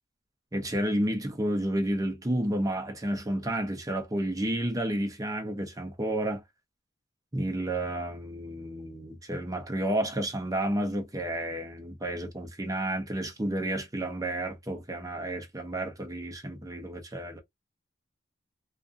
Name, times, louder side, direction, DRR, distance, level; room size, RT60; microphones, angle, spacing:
voice 1, 0.5-6.4 7.3-17.4, right 1 dB, 20° right, 0.6 m, -31 dB
2.5 x 2.4 x 2.5 m
head